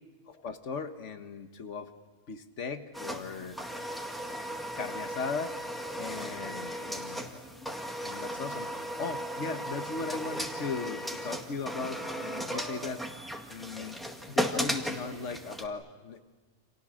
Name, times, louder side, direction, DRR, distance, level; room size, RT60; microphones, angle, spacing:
voice 1, 0.3-1.9 2.3-3.6 4.8-5.7 6.0-7.7 8.0-13.0 13.5-14.0 14.3-16.2, left 4 dB, 85° left, 8 dB, 1.6 m, -38 dB
sound 1, 2.9-15.7, equal, ahead, 2.0 m, -36 dB
30.0 x 27.5 x 6.4 m, 1.3 s
omnidirectional pair, 1.2 m